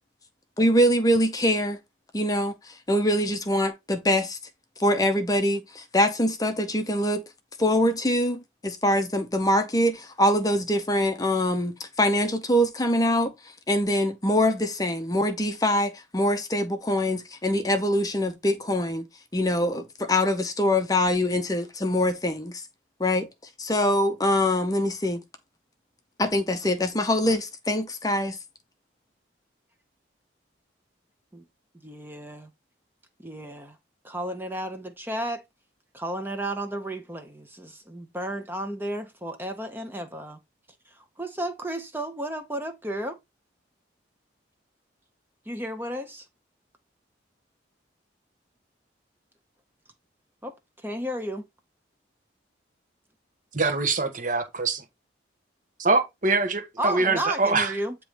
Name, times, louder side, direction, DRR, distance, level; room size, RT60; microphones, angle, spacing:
voice 1, 0.6-1.8 2.1-4.4 4.8-7.2 7.6-13.3 13.7-19.1 19.3-22.6 23.0-23.3 23.6-25.2 26.2-28.4, left 1 dB, 20° left, 0.8 m, -24 dB
voice 2, 31.8-32.5 33.2-33.8 34.0-35.4 35.9-40.4 41.0-43.2 45.5-46.3 50.4-51.5 56.8-58.0, right 1 dB, 10° right, 0.9 m, -33 dB
voice 3, 53.5-54.8 55.8-57.7, right 3 dB, 45° right, 1.3 m, -24 dB
8.7 x 3.1 x 5.0 m
head